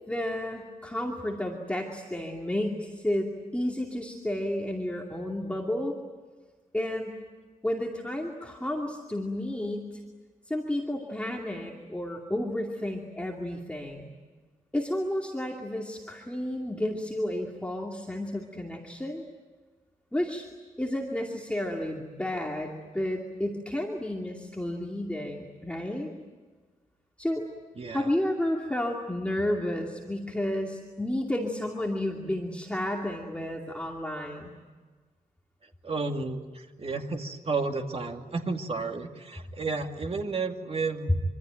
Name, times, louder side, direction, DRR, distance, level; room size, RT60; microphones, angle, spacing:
voice 1, 0.1-5.9 6.7-7.2 7.6-9.9 10.5-14.1 14.7-19.2 20.1-20.5 20.8-26.1 27.2-27.4 27.9-34.5, left 1 dB, 10° left, -1 dB, 2.5 m, -31 dB
voice 2, 27.8-28.1 35.8-41.2, right 3 dB, 40° right, 4 dB, 2.4 m, -32 dB
26.0 x 25.5 x 9.1 m, 1.4 s
wide cardioid pair, 160°, 15 cm